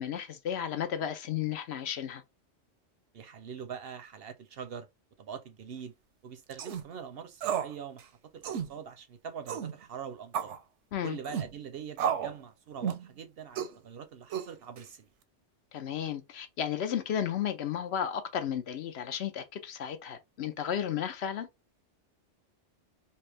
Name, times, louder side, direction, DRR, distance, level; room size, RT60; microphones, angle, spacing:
voice 1, 0.0-2.2 10.9-11.2 15.7-21.5, left 9 dB, 70° left, 0.8 m, -33 dB
voice 2, 3.1-4.9 5.2-5.9 6.2-10.6 11.0-15.1, right 7 dB, 60° right, 0.7 m, -43 dB
sound 1, 6.5-6.8 7.4-7.7 8.0-8.1 8.4-8.7 9.5-9.7 10.3-10.6 11.3-11.5 12.0-12.4 12.8-13.1 13.6-13.8 14.3-14.8, right 8 dB, 80° right, 0.9 m, -32 dB
3.3 x 2.7 x 3.3 m
omnidirectional pair, 1.2 m